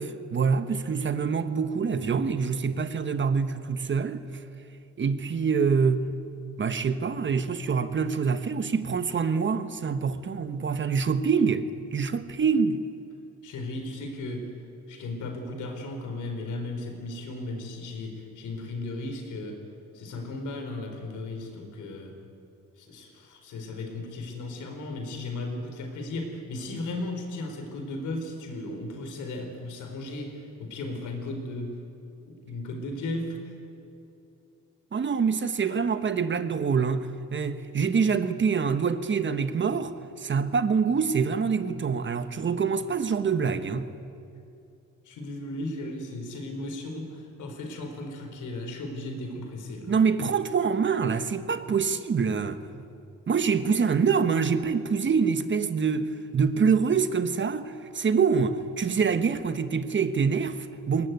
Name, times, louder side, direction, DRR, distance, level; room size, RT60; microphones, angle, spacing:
voice 1, 0.0-4.2 5.0-6.0 6.6-12.8 34.9-43.9 49.9-52.6 53.3-61.1, right 5 dB, 40° right, 1.3 m, -25 dB
voice 2, 13.4-14.5 14.9-19.6 19.9-22.2 22.8-31.8 32.3-33.6 45.0-50.0, left 2 dB, 80° left, 4.3 m, -36 dB
21.0 x 18.5 x 9.4 m
cardioid pair, 90°, 30 cm